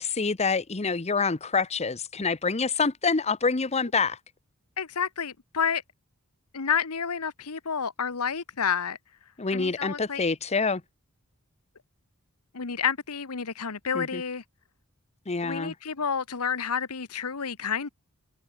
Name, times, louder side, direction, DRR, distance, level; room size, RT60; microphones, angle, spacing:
voice 1, 0.0-4.2 9.4-10.8 13.9-14.2 15.3-15.7, left 4 dB, 30° left, 0.9 m, -26 dB
voice 2, 4.8-5.8 6.5-9.0 9.5-10.2 12.5-14.4 15.4-17.9, left 6 dB, 80° left, 1.2 m, -29 dB
head